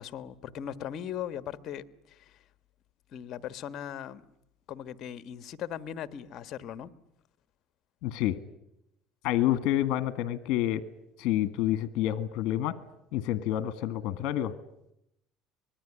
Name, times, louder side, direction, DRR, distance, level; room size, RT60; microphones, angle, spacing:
voice 1, 0.0-2.4 3.1-4.2 4.7-6.9, left 9 dB, 50° left, 1.4 m, -39 dB
voice 2, 8.0-8.4 9.2-10.8 11.2-12.8 13.1-14.5, left 13 dB, 65° left, 1.6 m, -28 dB
25.5 x 21.0 x 9.8 m
cardioid pair, 125°, 0 cm